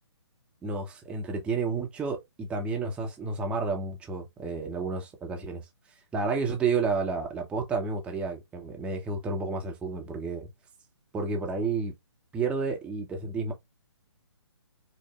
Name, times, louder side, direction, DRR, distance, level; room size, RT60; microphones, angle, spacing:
voice 1, 0.6-5.6 6.1-10.5 11.1-11.9 12.3-13.5, right 4 dB, 5° right, 0.8 m, -31 dB
4.9 x 2.1 x 3.3 m
figure-of-eight pair, 135°, 15 cm